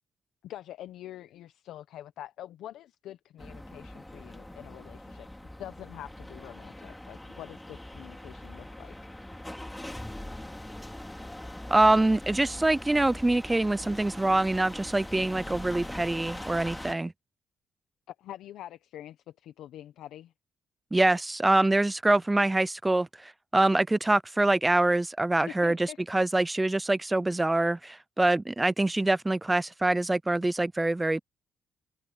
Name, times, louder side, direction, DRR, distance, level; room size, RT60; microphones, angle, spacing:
voice 1, 0.4-5.3 5.6-8.9 18.1-20.3 25.5-26.0, left 12 dB, 80° left, 0.9 m, -45 dB
sound 1, 3.4-16.9, left 1 dB, 10° left, 2.7 m, -42 dB
voice 2, 11.7-17.1 20.9-31.2, right 2 dB, 15° right, 0.3 m, -25 dB
cardioid pair, 90°, 0 cm